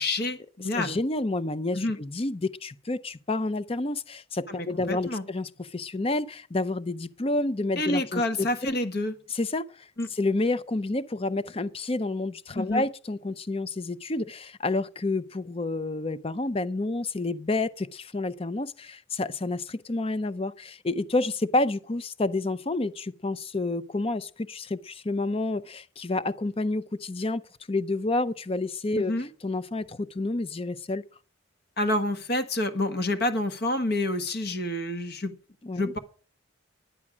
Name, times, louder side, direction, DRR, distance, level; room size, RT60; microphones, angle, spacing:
voice 1, 0.0-1.0 1.7-2.0 4.5-5.2 7.8-9.1 10.0-10.1 12.5-12.8 28.9-29.3 31.8-35.3 35.7-36.0, left 1 dB, 50° left, 1.4 m, -28 dB
voice 2, 0.8-8.8 9.3-9.9 10.2-27.4 27.7-29.1 29.4-31.0 35.6-35.9, left 2 dB, 30° left, 0.5 m, -29 dB
10.5 x 9.8 x 6.1 m
head